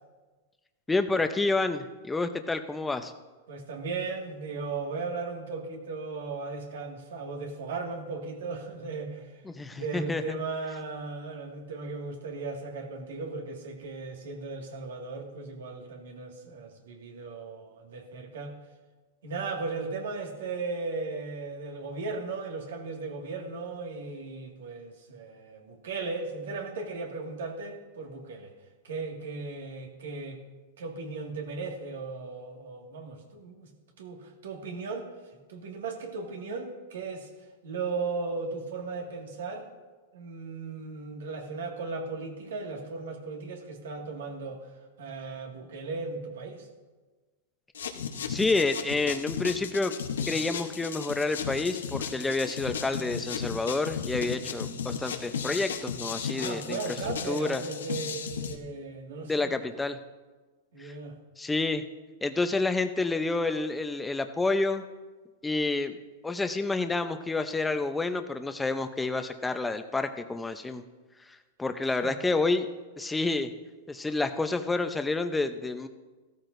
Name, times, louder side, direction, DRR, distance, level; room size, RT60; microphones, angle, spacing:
voice 1, 0.9-3.1 9.4-10.4 48.3-49.9 50.3-56.8 57.3-57.6 59.2-60.0 60.8-60.9 61.4-61.8 62.2-64.8 65.4-66.0 66.2-70.8 71.6-72.7 73.0-73.5 73.9-75.9, left 3 dB, 10° left, 8 dB, 0.7 m, -29 dB
voice 2, 3.5-9.3 9.7-18.6 19.2-28.5 28.8-30.4 30.8-33.7 34.0-35.1 35.5-37.3 37.6-39.7 40.1-44.7 45.0-46.7 56.3-59.7 60.7-61.2 72.0-72.2, right 4 dB, 80° right, 1 dB, 2.0 m, -36 dB
sound 1, 47.7-58.6, left 7 dB, 90° left, 1.0 m, -35 dB
15.0 x 13.5 x 2.6 m, 1.3 s
hypercardioid pair, 125°, 0 cm